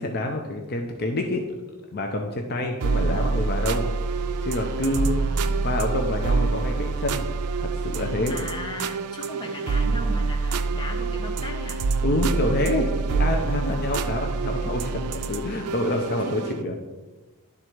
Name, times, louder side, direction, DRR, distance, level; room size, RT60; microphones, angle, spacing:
voice 1, 0.0-1.4 1.9-3.9 4.4-5.2 5.6-7.3 7.6-8.4 12.0-16.8, left 1 dB, 45° left, 2 dB, 0.6 m, -27 dB
sound 1, 2.8-16.6, right 4 dB, 90° right, 0.4 m, -26 dB
voice 2, 4.9-6.0 8.3-11.8 16.1-16.3, left 1 dB, 20° left, 1 dB, 1.0 m, -38 dB
11.0 x 3.8 x 4.5 m, 1.2 s
head